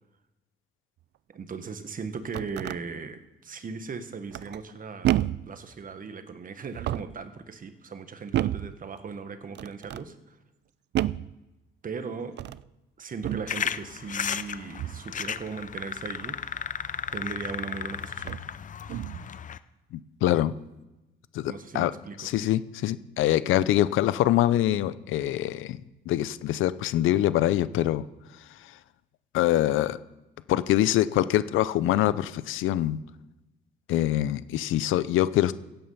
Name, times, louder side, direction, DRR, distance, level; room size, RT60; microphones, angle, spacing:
voice 1, 1.3-10.4 11.8-12.4 13.0-16.4 17.1-18.3 21.5-22.3, right 5 dB, 45° right, 10 dB, 1.3 m, -38 dB
sound 1, 2.0-2.8 4.3-4.7 5.0-5.5 6.7-7.2 8.3-8.8 9.5-10.1 10.9-11.3 12.3-12.7 13.2-13.5 14.8-15.1 17.2-17.3 18.2-18.5 18.9-19.3, right 13 dB, 60° right, 0.4 m, -30 dB
sound 2, 13.5-19.6, left 8 dB, 40° left, 0.6 m, -34 dB
voice 2, 19.9-20.5 21.3-21.9 22.2-25.8 26.1-28.1 29.3-30.0 30.5-33.0 33.9-35.6, left 13 dB, 85° left, 16 dB, 0.6 m, -24 dB
16.0 x 9.1 x 5.6 m, 1.0 s
cardioid pair, 90°, 20 cm